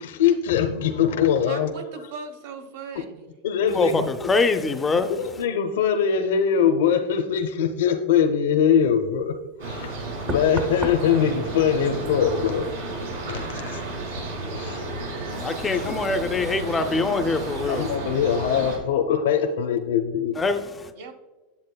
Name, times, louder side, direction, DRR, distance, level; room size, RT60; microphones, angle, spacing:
voice 1, 0.0-1.7 3.4-4.1 5.1-9.3 9.6-13.8 14.5-14.9 15.9-16.0 17.7-20.4, left 8 dB, 85° left, 0.6 m, -22 dB
voice 2, 1.5-3.3 21.0-21.1, right 4 dB, 70° right, 1.0 m, -38 dB
voice 3, 3.7-5.1 15.3-17.9 20.4-20.9, left 3 dB, 15° left, 0.4 m, -24 dB
Knock, 9.2-9.4 10.3-13.8 14.0-14.4, right 2 dB, 30° right, 0.7 m, -36 dB
sound 1, 9.6-18.8, right 2 dB, 85° right, 2.3 m, -32 dB
8.5 x 7.8 x 2.2 m
supercardioid pair, 155°, 0 cm